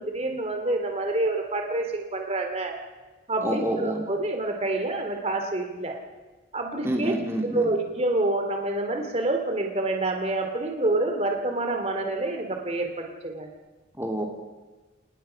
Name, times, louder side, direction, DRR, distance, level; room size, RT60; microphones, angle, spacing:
voice 1, 0.0-2.8 3.3-6.0 6.5-7.2 7.5-13.5, right 2 dB, 35° right, 3 dB, 2.7 m, -27 dB
voice 2, 3.4-4.0 6.8-7.7 14.0-14.2, right 1 dB, 15° right, 1 dB, 3.3 m, -27 dB
29.5 x 19.0 x 5.8 m, 1.2 s
head